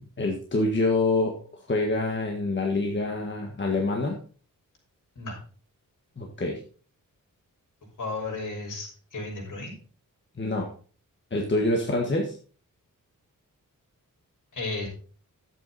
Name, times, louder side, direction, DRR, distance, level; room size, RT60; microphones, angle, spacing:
voice 1, 0.2-1.3 1.7-4.2 6.2-6.6 10.4-10.7 11.3-12.3, left 2 dB, 35° left, 1 dB, 1.7 m, -26 dB
voice 2, 8.0-9.7 14.5-14.9, left 3 dB, 65° left, -2 dB, 5.9 m, -34 dB
11.5 x 8.5 x 4.2 m, 0.41 s
wide cardioid pair, 145°, 33 cm